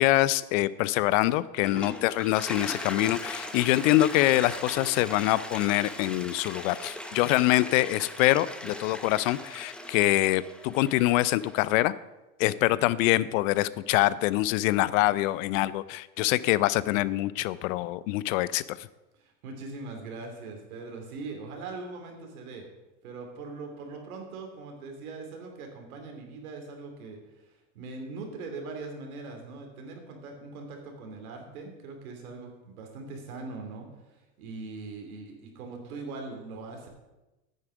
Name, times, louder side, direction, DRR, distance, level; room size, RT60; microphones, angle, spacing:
voice 1, 0.0-11.9 12.4-18.8, left 16 dB, 65° left, 18 dB, 0.6 m, -25 dB
Toilet flush, 1.4-11.7, left 1 dB, ahead, 0.8 m, -39 dB
voice 2, 19.2-22.6 23.0-27.2 27.7-36.9, right 3 dB, 80° right, 3 dB, 2.9 m, -41 dB
9.7 x 8.8 x 5.0 m, 1.0 s
supercardioid pair, 110°, 42 cm